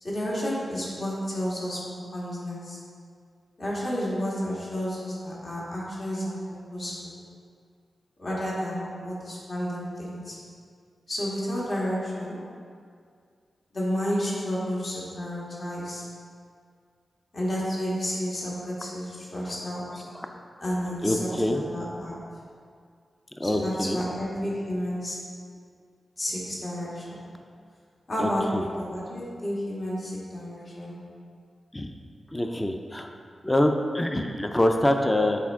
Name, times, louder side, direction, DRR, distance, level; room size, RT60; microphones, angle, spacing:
voice 1, 0.0-2.8 3.6-6.4 6.7-7.1 8.2-10.4 11.1-12.4 13.7-16.1 17.3-20.0 20.6-22.2 23.4-25.2 26.2-27.2 28.1-31.0, equal, 45° left, -7 dB, 1.7 m, -31 dB
voice 2, 21.0-21.6 23.4-24.0 28.2-28.6 31.7-31.9 32.3-33.1 33.4-35.5, left 1 dB, 15° left, 4 dB, 0.5 m, -25 dB
8.3 x 4.4 x 3.6 m, 2.2 s
wide cardioid pair, 90°, 0 cm